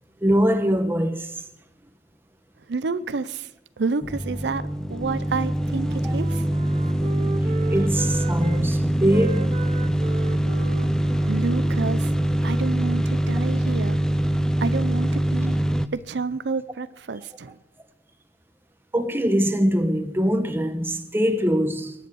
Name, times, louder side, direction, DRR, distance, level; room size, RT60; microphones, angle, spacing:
voice 1, 0.2-1.3 6.0-6.2 7.7-9.5 18.9-21.9, equal, 15° right, 1.1 m, -22 dB
voice 2, 2.7-3.5 3.8-6.4 10.7-10.8 11.3-12.1 12.4-14.0 14.6-15.6 15.9-17.6, right 4 dB, 80° right, 0.6 m, -29 dB
sound 1, 4.0-15.9, right 1 dB, 5° left, 0.5 m, -23 dB
Wind instrument woodwind instrument, 5.3-8.6 9.0-12.9, right 4 dB, 35° right, 1.2 m, -37 dB
22.0 x 9.4 x 6.3 m
head